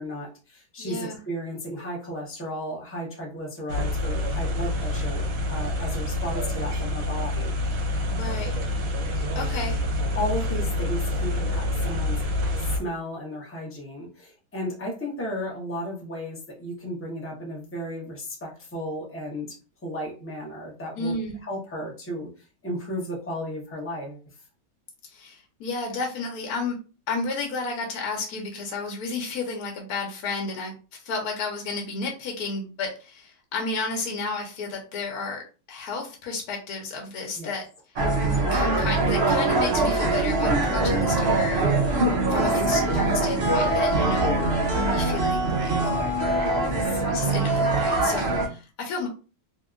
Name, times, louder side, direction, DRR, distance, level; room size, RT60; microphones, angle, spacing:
voice 1, 0.0-7.5 10.1-12.3 12.6-19.6 19.8-24.2 37.3-37.5 42.3-42.4 46.6-47.1, equal, 20° left, -2 dB, 0.3 m, -34 dB
voice 2, 0.8-1.2 8.2-8.6 9.3-9.8 21.0-21.4 25.0-26.8 27.1-35.4 35.7-37.7 38.5-41.6 42.3-44.3 44.7-45.9 47.1-49.1, left 3 dB, 65° left, 1 dB, 1.1 m, -32 dB
sound 1, 3.7-12.8, left 1 dB, 65° right, 0.9 m, -27 dB
sound 2, 38.0-48.5, right 2 dB, 90° right, 0.5 m, -23 dB
2.9 x 2.7 x 2.4 m, 0.34 s
omnidirectional pair, 1.8 m